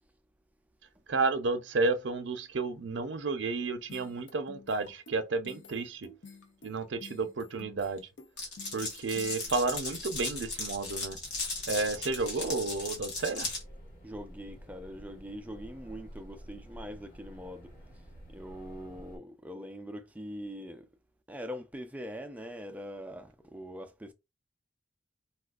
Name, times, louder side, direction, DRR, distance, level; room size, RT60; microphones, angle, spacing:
voice 1, 1.1-6.1 6.6-8.1 8.7-11.2 11.7-13.5, right 3 dB, 75° right, 0.6 m, -31 dB
sound 1, 3.9-10.1, left 3 dB, 90° left, 0.8 m, -51 dB
Glass, 8.4-13.6, left 3 dB, 65° left, 1.6 m, -36 dB
sound 2, 9.4-19.2, equal, 50° left, 1.6 m, -50 dB
voice 2, 14.0-17.7 18.3-20.9 21.3-24.1, equal, 10° right, 0.4 m, -42 dB
4.1 x 2.4 x 2.4 m
head